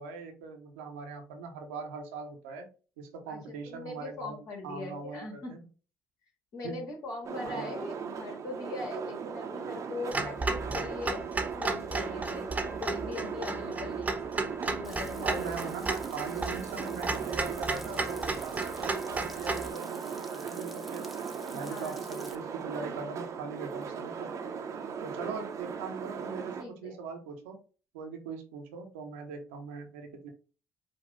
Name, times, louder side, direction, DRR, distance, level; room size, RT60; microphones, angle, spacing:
voice 1, 0.0-2.7 3.0-5.6 6.6-6.8 7.4-7.7 15.2-21.1 21.5-24.3 25.0-27.6 27.9-30.3, right 5 dB, 80° right, 4 dB, 0.9 m, -41 dB
voice 2, 3.3-5.7 6.5-14.2 14.6-15.5 21.5-22.2 26.6-27.0, left 2 dB, 60° left, 0 dB, 2.2 m, -41 dB
sound 1, 7.2-26.6, right 6 dB, 50° right, 0.7 m, -38 dB
Clock, 10.1-19.7, right 3 dB, 20° right, 0.9 m, -34 dB
Frying (food), 14.8-22.4, equal, ahead, 0.7 m, -51 dB
5.2 x 2.5 x 3.9 m, 0.35 s
hypercardioid pair, 50°, 7 cm